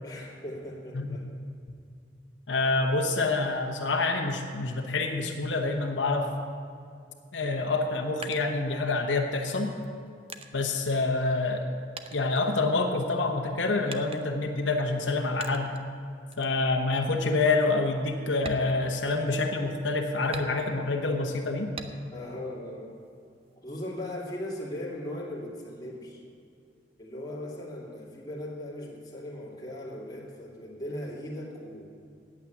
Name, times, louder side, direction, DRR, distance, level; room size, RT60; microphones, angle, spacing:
voice 1, 0.0-1.3 22.1-22.9 23.6-26.2 27.0-31.9, left 1 dB, 20° left, -4 dB, 2.4 m, -38 dB
voice 2, 2.5-6.3 7.3-9.7 10.5-11.6 12.1-15.8 16.4-21.7, left 3 dB, 85° left, 2 dB, 1.0 m, -27 dB
sound 1, 7.7-9.2 9.8-11.7 12.0-13.1 13.9-14.5 15.4-15.9 16.3-16.6 17.0-17.1 17.5-17.7 18.3-19.5 20.3-21.0 21.8-22.3 22.7-23.5, right 4 dB, 30° right, 0.6 m, -44 dB
8.9 x 8.6 x 9.2 m, 2.3 s
head